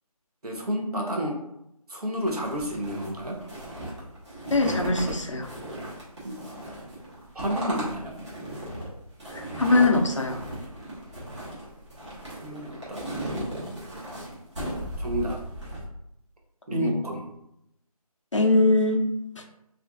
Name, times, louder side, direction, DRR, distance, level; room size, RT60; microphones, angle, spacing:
voice 1, 0.4-1.4 1.9-3.4 6.2-6.7 7.3-8.1 12.4-13.2 15.0-15.4 16.7-17.3, equal, 75° right, 0 dB, 0.7 m, -30 dB
sound 1, 2.2-15.8, right 1 dB, 50° right, 1.1 m, -36 dB
voice 2, 4.5-5.5 9.3-10.4 16.7-16.9 18.3-19.0 19.4-19.5, left 2 dB, 55° left, 2 dB, 0.4 m, -22 dB
2.4 x 2.4 x 2.3 m, 0.81 s
figure-of-eight pair, 175°, 20 cm